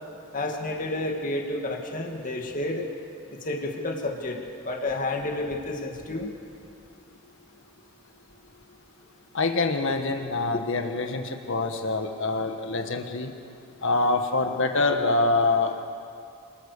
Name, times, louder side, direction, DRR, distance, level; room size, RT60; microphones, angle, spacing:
voice 1, 0.3-2.9 3.3-6.3, left 2 dB, 40° left, 2 dB, 2.2 m, -30 dB
voice 2, 9.3-13.3 13.8-15.9, left 3 dB, 60° left, 5 dB, 1.5 m, -25 dB
29.0 x 21.0 x 6.8 m, 2.5 s
head